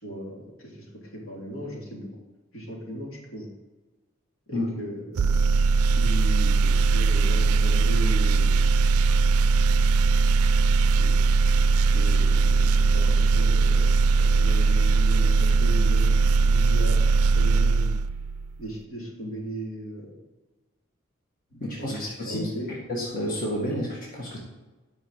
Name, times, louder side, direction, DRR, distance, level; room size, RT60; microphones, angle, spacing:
voice 1, 0.0-2.1 2.5-3.5 4.5-5.2 5.8-8.6 11.0-11.1 11.9-13.9 14.2-16.2 16.4-17.0 17.3-17.9 18.6-20.1 21.5-22.7, equal, 70° left, -3 dB, 3.4 m, -36 dB
sound 1, 5.2-18.5, right 4 dB, 90° right, 0.4 m, -20 dB
voice 2, 21.6-22.4 22.9-24.4, equal, 40° left, -5 dB, 2.0 m, -30 dB
9.7 x 6.2 x 7.5 m, 1.2 s
head